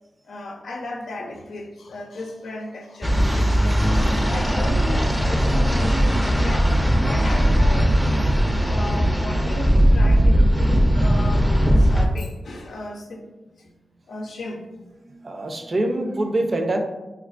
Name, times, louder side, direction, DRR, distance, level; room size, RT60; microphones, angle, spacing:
voice 1, 0.2-11.5 11.8-13.3 13.6-13.7 14.1-14.9, left 2 dB, 80° left, 2 dB, 0.5 m, -35 dB
sound 1, 3.0-12.1, equal, ahead, 0.5 m, -18 dB
voice 2, 15.0-16.8, right 1 dB, 50° right, 4 dB, 0.5 m, -24 dB
4.2 x 2.3 x 2.4 m, 1.1 s
cardioid pair, 45°, 0 cm